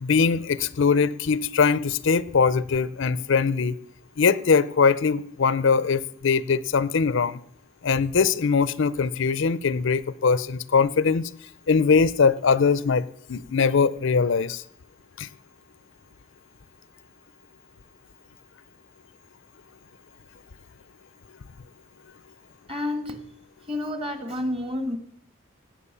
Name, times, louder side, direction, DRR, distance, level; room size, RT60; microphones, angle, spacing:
voice 1, 0.0-3.7 4.2-7.4 7.8-11.3 11.7-14.6 15.2-15.3, left 5 dB, 60° left, 18 dB, 0.5 m, -21 dB
voice 2, 22.7-23.2 23.6-25.0, left 1 dB, 30° right, 8 dB, 1.9 m, -29 dB
17.0 x 9.0 x 6.9 m, 0.70 s
head